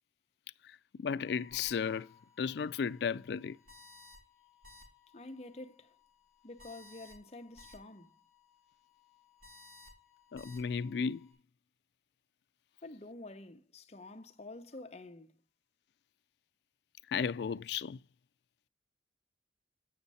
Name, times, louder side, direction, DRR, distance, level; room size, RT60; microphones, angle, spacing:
voice 1, 0.9-2.1 2.4-3.6 10.3-11.3 17.1-18.0, left 6 dB, 70° left, 0.3 m, -34 dB
sound 1, 1.2-11.3, left 3 dB, 45° right, 4.5 m, -59 dB
voice 2, 5.1-6.0 6.4-8.1 12.8-15.4, left 2 dB, 35° left, 0.8 m, -48 dB
8.5 x 6.3 x 4.1 m
head